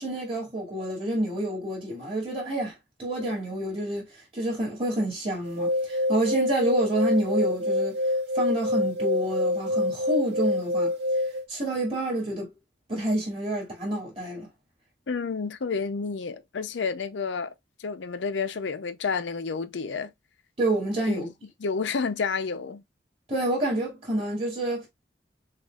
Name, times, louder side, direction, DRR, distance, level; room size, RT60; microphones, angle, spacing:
voice 1, 0.0-4.1 4.3-8.0 8.3-10.9 11.5-12.5 12.9-14.5 20.6-21.3 23.3-24.9, right 1 dB, 30° right, 2.2 m, -28 dB
sound 1, 5.5-11.5, left 1 dB, 55° right, 0.6 m, -26 dB
voice 2, 15.1-17.5 17.8-20.1 21.1-21.3 21.6-22.8, left 5 dB, 80° left, 0.5 m, -30 dB
6.3 x 2.4 x 2.3 m
head